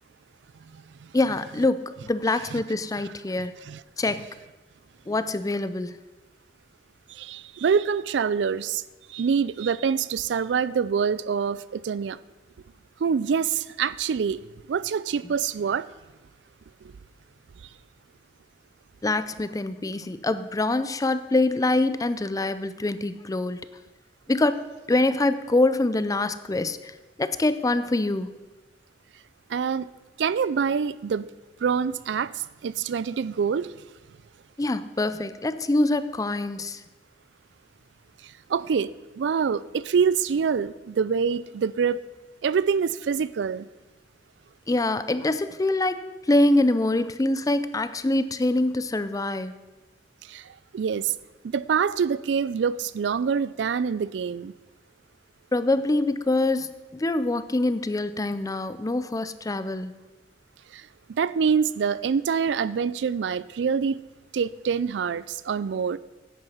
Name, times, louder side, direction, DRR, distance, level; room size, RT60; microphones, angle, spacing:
voice 1, 1.1-3.6 4.0-4.3 5.1-6.0 19.0-23.6 24.3-26.9 27.2-28.3 34.6-36.8 44.7-46.0 46.3-49.6 55.5-59.9, left 2 dB, 20° left, 13 dB, 0.5 m, -25 dB
voice 2, 7.1-8.8 9.1-12.2 13.0-14.4 14.7-15.9 29.5-29.9 30.2-31.3 31.6-33.7 38.5-38.9 39.1-42.0 42.4-43.7 50.3-50.4 50.7-51.1 51.4-54.5 60.7-60.8 61.1-64.0 64.3-66.0, right 6 dB, 85° right, 18 dB, 0.4 m, -25 dB
10.0 x 7.9 x 5.6 m, 1.2 s
head